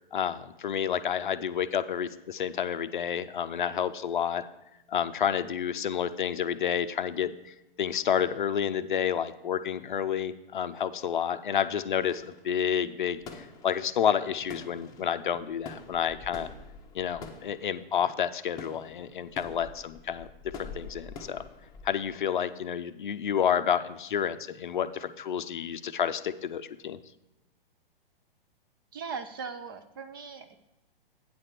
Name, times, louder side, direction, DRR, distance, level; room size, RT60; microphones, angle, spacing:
voice 1, 0.1-4.4 4.9-16.5 16.9-20.3 20.6-21.4 21.8-27.0, left 8 dB, 55° left, 12 dB, 0.5 m, -30 dB
sound 1, 12.0-22.1, left 4 dB, 15° left, 0.7 m, -46 dB
voice 2, 28.9-30.6, right 5 dB, 25° right, 8 dB, 0.4 m, -39 dB
8.8 x 4.3 x 6.4 m, 0.95 s
figure-of-eight pair, 115°, 30 cm